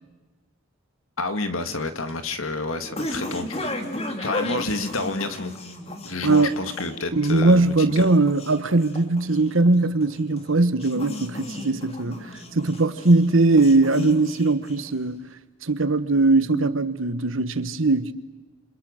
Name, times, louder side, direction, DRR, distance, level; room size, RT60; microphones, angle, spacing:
voice 1, 1.2-3.6 4.2-5.5 6.0-8.1, left 3 dB, 90° left, 2.1 m, -29 dB
sound 1, 1.6-15.2, left 1 dB, 30° left, 2.7 m, -35 dB
voice 2, 6.2-6.5 7.1-15.3 15.6-18.1, right 2 dB, 75° right, 1.3 m, -20 dB
29.0 x 26.5 x 6.6 m
head